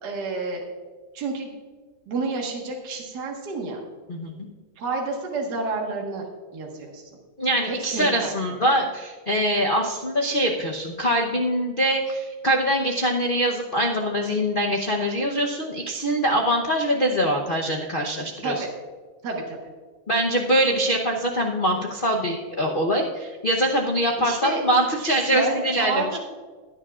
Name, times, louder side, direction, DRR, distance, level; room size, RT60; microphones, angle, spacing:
voice 1, 0.0-0.6 1.1-1.6 2.1-3.8 4.8-6.2 6.5-7.0 7.7-8.3 18.4-18.7 19.2-19.6 24.2-24.6 25.0-26.2, right 3 dB, 55° right, -1 dB, 2.0 m, -29 dB
voice 2, 7.4-18.6 20.1-26.2, equal, 60° left, 0 dB, 0.5 m, -23 dB
17.0 x 9.9 x 2.4 m, 1.5 s
omnidirectional pair, 2.3 m